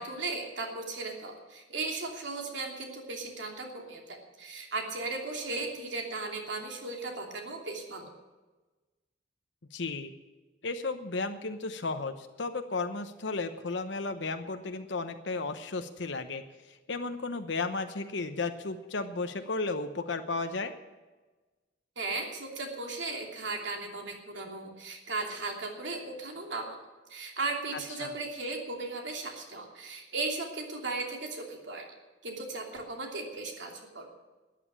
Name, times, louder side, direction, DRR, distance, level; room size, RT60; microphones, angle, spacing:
voice 1, 0.0-8.1 22.0-26.8 27.1-31.9 32.2-34.1, right 3 dB, 75° right, 2 dB, 3.0 m, -36 dB
voice 2, 9.7-10.1 10.6-16.4 16.7-20.7 28.0-28.1, left 3 dB, 70° left, 8 dB, 0.9 m, -34 dB
13.5 x 9.4 x 8.7 m, 1.2 s
head